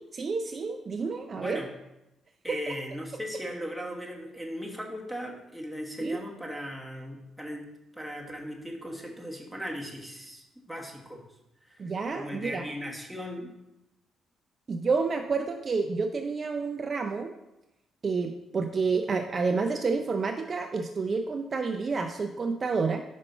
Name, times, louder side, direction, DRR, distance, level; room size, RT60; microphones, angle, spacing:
voice 1, 0.1-1.6 6.0-6.2 11.8-12.6 14.7-17.3 18.0-23.0, right 4 dB, 40° right, 4 dB, 0.5 m, -29 dB
voice 2, 1.3-1.7 2.4-7.7 7.9-11.2 11.7-13.5, equal, ahead, -1 dB, 1.3 m, -37 dB
5.4 x 4.2 x 5.4 m, 0.90 s
cardioid pair, 90°, 0 cm